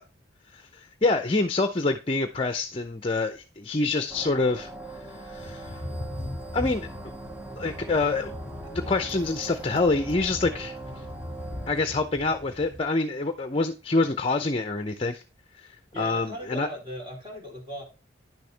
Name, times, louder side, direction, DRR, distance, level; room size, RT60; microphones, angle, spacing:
voice 1, 0.5-4.7 5.2-5.8 6.5-7.1 7.6-8.3 8.7-10.8 11.7-15.2 15.6-16.7, left 3 dB, 30° left, 8 dB, 0.6 m, -26 dB
sound 1, 4.1-11.7, right 2 dB, 10° right, 0.8 m, -41 dB
Thunder / Rain, 5.4-12.8, left 1 dB, 45° right, 3.1 m, -39 dB
voice 2, 15.9-17.8, left 1 dB, 25° right, -1 dB, 3.5 m, -38 dB
10.0 x 6.7 x 3.3 m, 0.32 s
head